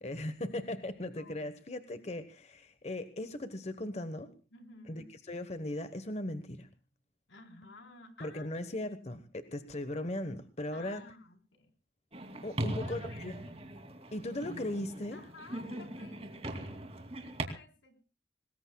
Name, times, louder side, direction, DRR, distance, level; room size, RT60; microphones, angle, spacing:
voice 1, 0.0-4.3 4.9-6.7 8.2-11.0 12.4-13.3 14.1-15.2, left 1 dB, 35° left, 10 dB, 1.1 m, -38 dB
voice 2, 1.2-1.6 4.5-5.1 7.3-8.5 10.7-11.7 12.6-13.2 15.1-16.9 17.2-18.0, left 3 dB, 85° left, 6 dB, 4.0 m, -54 dB
sound 1, 12.1-17.4, right 1 dB, 35° right, 2.7 m, -40 dB
25.5 x 20.0 x 2.3 m, 0.35 s
head